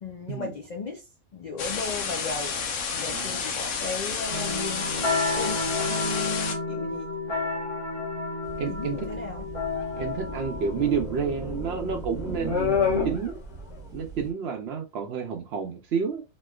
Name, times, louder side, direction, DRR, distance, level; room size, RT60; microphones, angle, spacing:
voice 1, 0.0-7.1 8.7-9.5, left 4 dB, 85° left, 0.3 m, -36 dB
sound 1, 1.6-6.5, left 5 dB, 70° left, 1.0 m, -30 dB
voice 2, 3.1-3.4 8.6-9.0 10.0-12.8 13.0-13.4 13.9-16.2, right 6 dB, 65° right, 0.7 m, -30 dB
sound 2, 4.3-11.8, left 3 dB, 25° left, 1.0 m, -31 dB
sound 3, 8.4-14.3, left 4 dB, 50° left, 1.1 m, -31 dB
3.1 x 2.9 x 2.2 m
omnidirectional pair, 1.4 m